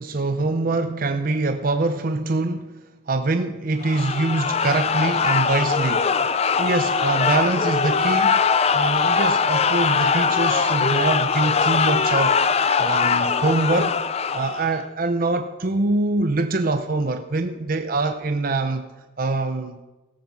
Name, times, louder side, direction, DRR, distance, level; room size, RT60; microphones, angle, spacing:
voice 1, 0.0-2.7 3.1-6.1 6.6-8.4 8.7-12.4 12.8-14.0 14.3-18.9 19.2-19.8, right 2 dB, 45° right, 8 dB, 0.6 m, -24 dB
sound 1, 3.8-14.8, left 5 dB, 30° left, 0.5 m, -21 dB
17.5 x 9.3 x 4.7 m, 1.1 s
head